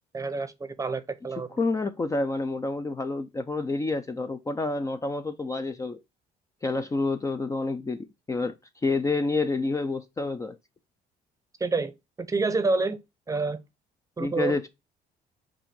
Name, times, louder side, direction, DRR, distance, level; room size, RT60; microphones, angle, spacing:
voice 1, 0.1-1.6 11.6-13.0 13.3-13.6 14.2-14.6, right 3 dB, 20° right, 0.8 m, -28 dB
voice 2, 1.6-6.0 6.6-8.6 8.8-10.6 14.2-14.7, left 3 dB, 20° left, 0.5 m, -28 dB
7.4 x 2.6 x 5.2 m
cardioid pair, 110°, 17 cm